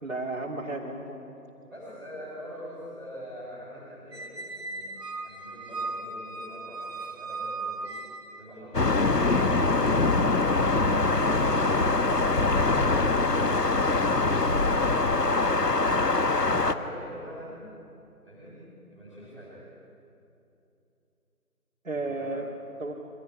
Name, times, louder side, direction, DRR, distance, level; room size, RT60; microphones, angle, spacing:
voice 1, 0.0-1.3 21.8-22.5 22.8-22.9, right 2 dB, 55° right, -3 dB, 3.1 m, -33 dB
voice 2, 1.6-4.9 5.2-7.9 15.7-17.6 18.2-19.6 21.9-22.3, equal, ahead, -20 dB, 2.9 m, -43 dB
Squeak, 4.1-8.6, right 3 dB, 85° right, 3.2 m, -37 dB
Thunder, 8.7-16.7, left 3 dB, 80° left, 1.5 m, -23 dB
25.5 x 16.5 x 10.0 m, 2.8 s
figure-of-eight pair, 170°, 47 cm